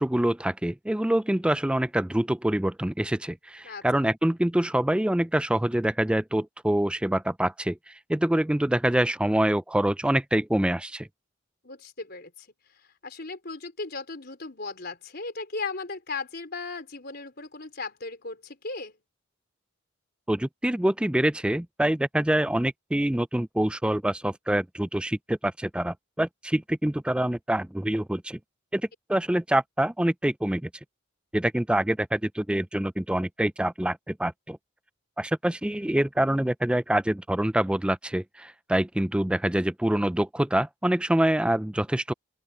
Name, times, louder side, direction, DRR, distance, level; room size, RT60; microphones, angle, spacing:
voice 1, 0.0-11.1 20.3-28.4 28.7-28.8 29.1-30.7 31.3-34.6 35.2-42.1, right 1 dB, 5° right, 0.3 m, -25 dB
voice 2, 3.6-4.1 11.6-12.5 13.0-19.0, left 3 dB, 50° left, 4.4 m, -37 dB
open air
head